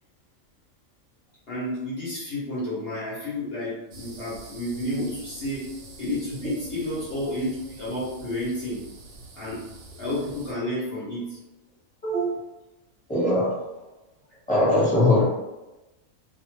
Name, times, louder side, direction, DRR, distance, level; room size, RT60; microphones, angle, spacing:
voice 1, 1.5-5.6 6.0-8.8 9.4-9.6 10.0-11.4, left 1 dB, 50° left, -9 dB, 1.0 m, -31 dB
sound 1, 3.9-10.5, right 3 dB, 75° right, 0.9 m, -46 dB
voice 2, 13.1-13.5 14.5-15.2, left 1 dB, 5° left, -9 dB, 1.1 m, -20 dB
2.5 x 2.4 x 3.1 m, 1.0 s
omnidirectional pair, 1.4 m